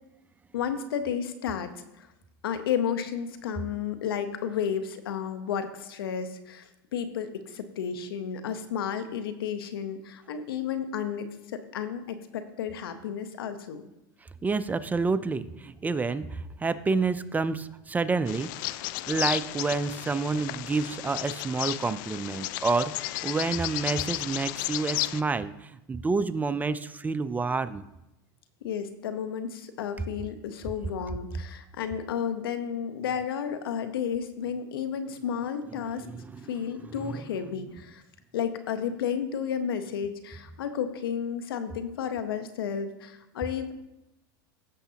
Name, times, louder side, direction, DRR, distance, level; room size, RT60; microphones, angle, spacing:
voice 1, 0.5-1.7 2.0-2.1 2.4-13.8 28.6-36.1 36.5-38.0 38.3-43.7, left 8 dB, 85° left, 9 dB, 1.0 m, -32 dB
voice 2, 14.4-18.8 19.1-27.8 36.0-36.5 36.8-37.2, right 4 dB, 15° right, 14 dB, 0.4 m, -29 dB
Bird vocalization bird call bird song, 18.3-25.2, left 17 dB, 60° left, 0.4 m, -33 dB
16.5 x 6.8 x 2.9 m, 0.91 s
hypercardioid pair, 115°, 12 cm